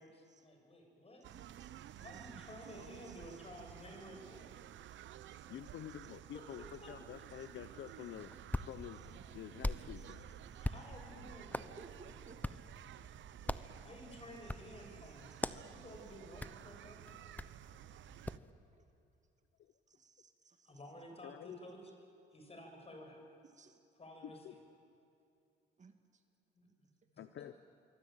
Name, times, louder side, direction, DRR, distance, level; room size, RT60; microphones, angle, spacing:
voice 1, 0.0-1.2 2.0-4.5 6.3-6.4 6.8-6.9 9.8-9.9 10.6-11.8 13.8-17.1 20.7-21.9 22.3-23.2 24.0-24.5 26.5-26.7, left 1 dB, 30° left, 3 dB, 7.2 m, -53 dB
sound 1, 1.2-18.4, right 12 dB, 70° right, 0.8 m, -53 dB
voice 2, 1.3-3.4 5.5-5.8 7.3-7.5 8.0-8.1 8.9-9.3 10.0-10.8 11.6-12.8 14.4-14.6 15.0-15.8 18.7-18.9 19.9-20.8 23.4-23.8 25.8-26.2, right 4 dB, 35° right, 7 dB, 2.1 m, -62 dB
voice 3, 5.5-8.3 8.7-9.0 9.3-10.2 19.6-19.7 21.2-21.6 24.2-24.6 27.2-27.5, left 11 dB, 70° left, 12 dB, 0.9 m, -48 dB
Hands, 8.1-18.5, left 1 dB, 10° left, 0.9 m, -44 dB
26.5 x 23.0 x 9.1 m, 2.6 s
cardioid pair, 90°, 20 cm